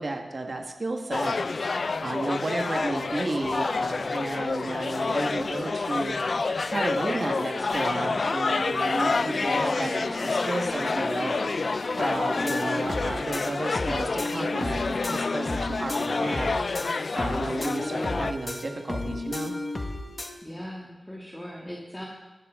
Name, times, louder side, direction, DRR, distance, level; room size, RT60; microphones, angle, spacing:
voice 1, 0.0-1.4 2.0-6.1 6.7-11.3 12.0-16.6 17.1-19.5, right 2 dB, 50° right, 3 dB, 1.6 m, -32 dB
sound 1, 1.1-18.3, left 3 dB, 60° left, 0.4 m, -28 dB
Human voice, 8.8-13.7, right 1 dB, 25° right, 1.3 m, -40 dB
sound 2, 12.4-20.3, left 2 dB, 40° left, 1.6 m, -33 dB
voice 2, 20.4-22.0, equal, 15° left, -3 dB, 2.2 m, -39 dB
19.5 x 12.5 x 3.7 m, 1.1 s
wide cardioid pair, 75°, 0 cm